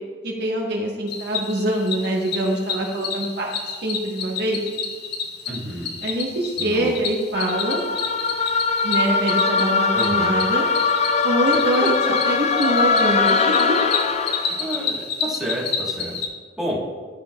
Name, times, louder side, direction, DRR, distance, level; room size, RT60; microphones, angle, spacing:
voice 1, 0.2-4.6 6.0-7.8 8.8-10.7 11.2-11.9 12.2-13.8, right 1 dB, 65° right, -1 dB, 1.1 m, -24 dB
Cricket, 1.1-16.3, left 5 dB, 65° left, 0.8 m, -30 dB
voice 2, 5.5-6.0 6.6-7.0 9.9-10.3 11.8-11.9 14.3-16.2 16.6-16.8, equal, ahead, -7 dB, 1.8 m, -30 dB
sound 1, 7.3-14.6, left 4 dB, 40° left, 0.3 m, -21 dB
12.5 x 5.3 x 2.3 m, 1.5 s
head